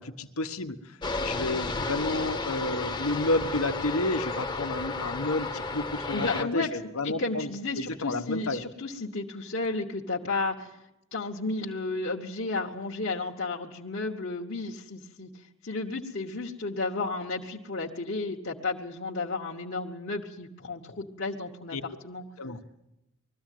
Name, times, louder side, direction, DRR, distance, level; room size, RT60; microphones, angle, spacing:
voice 1, 0.0-7.5 7.8-8.6 21.7-21.8 22.4-22.6, left 2 dB, 75° left, 8 dB, 1.2 m, -31 dB
sound 1, 1.0-6.4, left 3 dB, 20° left, 1.0 m, -32 dB
voice 2, 6.1-6.8 7.0-10.8 11.1-22.2, left 3 dB, 50° left, -3 dB, 1.2 m, -33 dB
21.0 x 14.5 x 9.2 m, 0.90 s
head